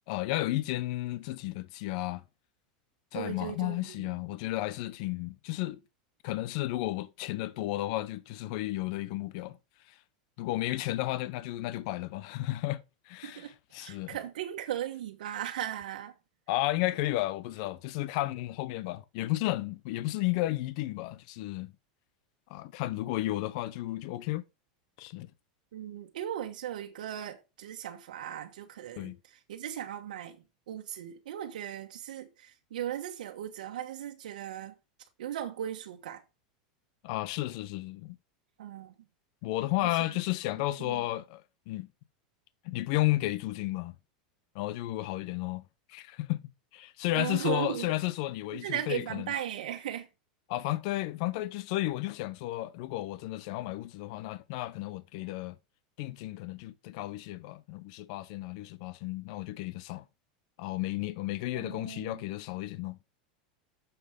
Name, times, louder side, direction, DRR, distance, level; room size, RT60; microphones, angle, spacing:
voice 1, 0.1-2.2 3.1-5.8 6.2-9.6 9.9-10.0 10.4-14.2 16.5-21.7 22.5-24.4 25.0-25.3 29.0-29.2 37.0-38.2 39.4-41.9 42.6-43.9 44.5-49.3 50.5-55.6 56.0-60.0 60.6-63.0, left 17 dB, 60° left, 0.8 m, -33 dB
voice 2, 3.1-4.1 13.2-13.5 13.8-16.1 25.7-34.7 35.2-36.2 38.6-38.9 39.8-40.0 40.8-41.1 47.1-47.9 48.5-50.1 61.5-62.2, right 10 dB, 90° right, 1.3 m, -37 dB
7.1 x 6.7 x 5.2 m
supercardioid pair, 135°, 4 cm